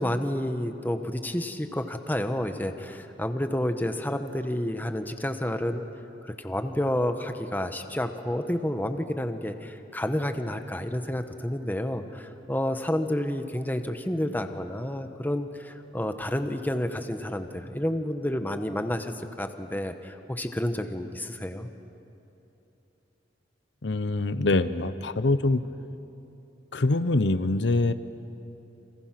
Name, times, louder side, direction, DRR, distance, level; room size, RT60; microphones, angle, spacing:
voice 1, 0.0-5.8 6.2-21.7, left 1 dB, 10° left, 7 dB, 1.1 m, -30 dB
voice 2, 23.8-25.6 26.7-27.9, left 2 dB, 80° left, 12 dB, 0.8 m, -24 dB
29.5 x 26.5 x 6.0 m, 2.8 s
head